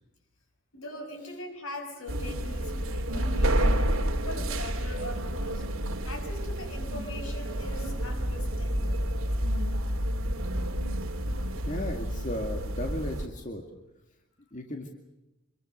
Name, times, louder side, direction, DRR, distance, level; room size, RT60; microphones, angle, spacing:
voice 1, 0.7-3.8 4.3-5.6 6.0-9.0, left 1 dB, 80° left, 4 dB, 6.4 m, -41 dB
sound 1, 2.1-13.3, right 1 dB, 70° right, 2.8 m, -29 dB
voice 2, 11.7-13.6 14.5-14.9, left 1 dB, 35° left, 3 dB, 2.4 m, -35 dB
26.5 x 23.0 x 6.7 m, 0.95 s
head